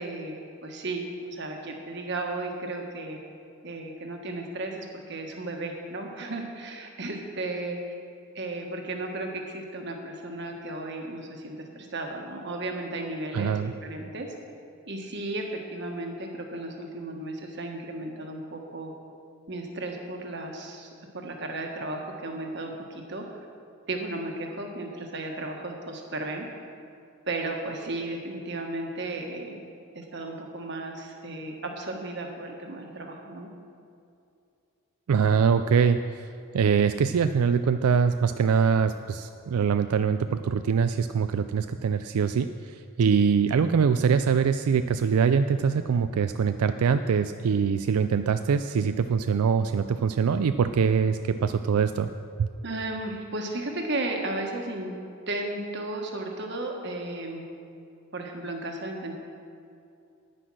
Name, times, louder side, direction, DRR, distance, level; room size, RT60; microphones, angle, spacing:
voice 1, 0.0-3.2 3.6-8.0 8.3-14.3 14.9-18.9 19.5-20.9 21.1-23.2 23.9-26.5 27.3-29.6 29.9-33.5 52.6-54.9 55.3-57.4 58.1-59.2, right 2 dB, 50° right, 2 dB, 1.4 m, -34 dB
voice 2, 13.3-13.7 35.1-36.3 36.5-52.1 52.4-52.5, right 6 dB, 90° right, 10 dB, 0.4 m, -23 dB
9.9 x 9.9 x 6.2 m, 2.5 s
head